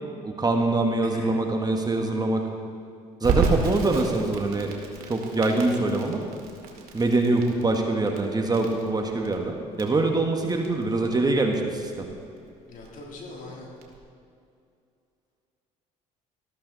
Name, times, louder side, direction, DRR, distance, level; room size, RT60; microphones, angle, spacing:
voice 1, 0.2-2.4 3.2-4.7 5.1-6.2 6.9-12.1, right 2 dB, 25° right, 3 dB, 1.6 m, -24 dB
voice 2, 1.0-1.4 12.7-13.7, left 2 dB, 55° left, -1 dB, 3.3 m, -42 dB
Crackle, 3.2-14.0, right 4 dB, 65° right, 2.4 m, -33 dB
14.0 x 13.0 x 4.1 m, 2.5 s
supercardioid pair, 70°, 17 cm